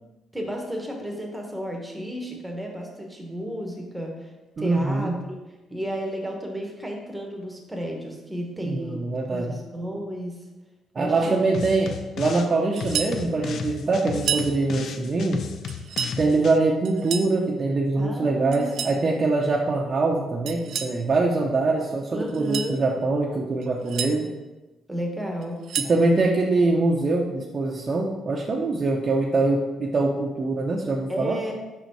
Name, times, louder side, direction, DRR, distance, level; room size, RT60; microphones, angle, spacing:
voice 1, 0.3-4.3 4.6-5.1 5.7-9.0 9.3-10.4 10.9-11.4 18.0-18.9 22.1-22.8 24.9-25.6 31.1-31.5, equal, 10° right, 1 dB, 1.2 m, -32 dB
voice 2, 4.6-5.1 8.6-9.5 10.9-15.4 16.2-24.3 25.8-31.4, right 3 dB, 40° right, -2 dB, 0.7 m, -23 dB
sound 1, 11.5-12.5 12.8-16.6, left 6 dB, 65° left, 0.4 m, -34 dB
sound 2, 12.8-13.2 14.1-14.5 15.7-16.2 16.8-17.3 18.5-19.0 20.5-21.0 22.3-22.7 23.6-24.1 25.4-26.0, right 8 dB, 75° right, 0.4 m, -30 dB
5.5 x 4.1 x 4.6 m, 1.1 s
cardioid pair, 90°, 0 cm